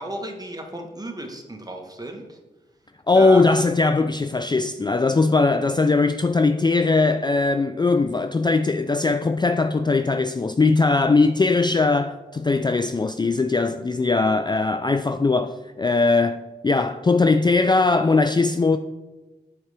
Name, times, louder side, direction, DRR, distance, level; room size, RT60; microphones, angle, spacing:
voice 1, 0.0-2.4 3.1-3.6, right 1 dB, 20° right, 1.3 m, -34 dB
voice 2, 3.1-18.8, left 3 dB, 25° left, 0.3 m, -20 dB
8.8 x 4.8 x 3.4 m
cardioid pair, 45°, 18 cm